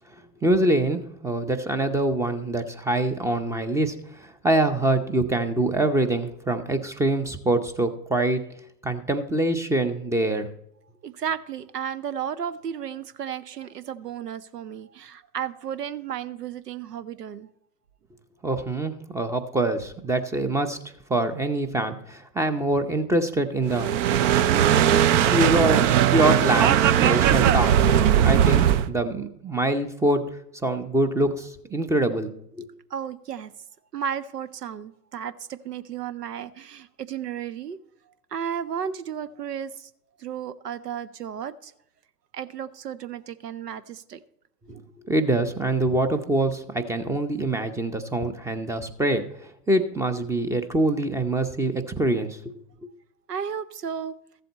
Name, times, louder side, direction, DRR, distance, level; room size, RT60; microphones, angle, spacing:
voice 1, 0.4-8.4 8.8-10.5 18.4-20.8 21.1-23.9 25.2-27.8 28.2-30.3 30.6-32.3 32.6-32.7 44.7-44.8 45.1-52.5 52.8-52.9, right 1 dB, 5° right, 10 dB, 0.6 m, -24 dB
voice 2, 11.0-17.5 32.9-33.5 33.9-37.8 38.3-39.9 40.2-41.7 42.3-44.2 44.7-44.8 53.3-54.1, right 8 dB, 90° right, 16 dB, 0.8 m, -33 dB
sound 1, 23.7-28.9, right 10 dB, 50° right, 0.7 m, -19 dB
14.0 x 7.7 x 4.1 m, 0.77 s
hypercardioid pair, 105°, 47 cm